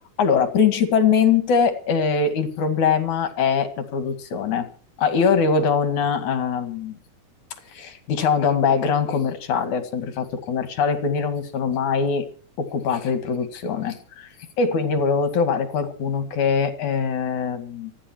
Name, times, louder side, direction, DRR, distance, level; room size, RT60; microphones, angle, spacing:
voice 1, 0.2-4.7 5.0-7.0 7.7-12.3 12.6-14.3 14.6-17.9, left 6 dB, 65° left, 8 dB, 3.4 m, -22 dB
27.0 x 11.0 x 4.6 m, 0.42 s
omnidirectional pair, 3.9 m